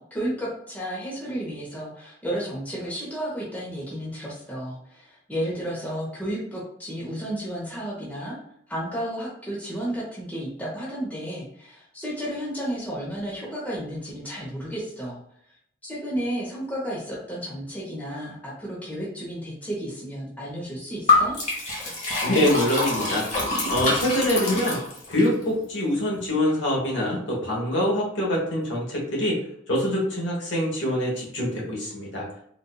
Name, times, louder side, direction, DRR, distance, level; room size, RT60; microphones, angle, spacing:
voice 1, 0.0-8.4 8.7-15.2 15.8-21.4, equal, 10° left, -6 dB, 0.9 m, -32 dB
Liquid, 21.1-25.3, left 2 dB, 35° left, 1.0 m, -25 dB
voice 2, 22.2-23.2 23.7-24.8 25.1-29.4 29.7-32.3, left 1 dB, 65° left, -3 dB, 1.1 m, -24 dB
3.9 x 2.6 x 2.3 m, 0.70 s
head